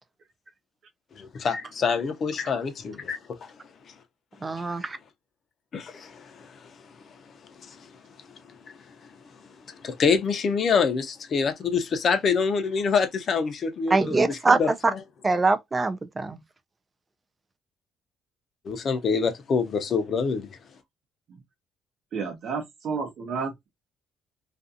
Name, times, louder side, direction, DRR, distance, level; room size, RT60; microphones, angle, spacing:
voice 1, 1.2-3.5 4.5-4.6 5.7-6.6 7.6-7.9 9.8-15.0 18.6-20.5, left 5 dB, 45° left, 0.6 m, -26 dB
voice 2, 4.4-5.0 13.9-14.6 14.8-14.9 15.2-16.4, right 3 dB, 20° right, 0.4 m, -23 dB
voice 3, 22.1-23.7, right 5 dB, 55° right, 0.7 m, -31 dB
2.5 x 2.3 x 2.5 m
cardioid pair, 115°, 0 cm